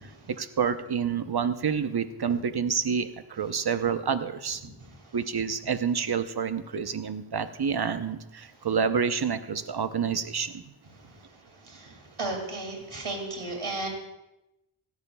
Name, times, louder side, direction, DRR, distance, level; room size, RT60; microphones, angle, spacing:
voice 1, 0.4-4.6 5.1-10.7, right 6 dB, 50° right, 10 dB, 0.8 m, -28 dB
voice 2, 11.6-13.9, right 2 dB, 75° right, 2 dB, 2.5 m, -34 dB
17.5 x 13.0 x 2.3 m, 0.94 s
wide cardioid pair, 55°, 50 cm